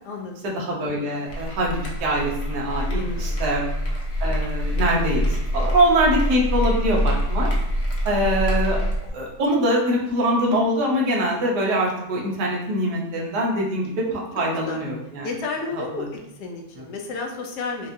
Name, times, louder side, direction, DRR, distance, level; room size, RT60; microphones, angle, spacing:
voice 1, 0.4-3.7 4.2-7.5 8.0-8.8 9.1-15.3 15.8-16.0, right 1 dB, 70° right, -3 dB, 1.4 m, -23 dB
sound 1, 1.3-9.1, equal, 50° left, 0.5 m, -25 dB
voice 2, 2.9-3.4 14.1-14.3 14.7-14.8 15.2-16.1 16.4-17.9, left 4 dB, 75° left, 1 dB, 1.1 m, -32 dB
4.6 x 2.4 x 2.6 m, 0.84 s
omnidirectional pair, 1.9 m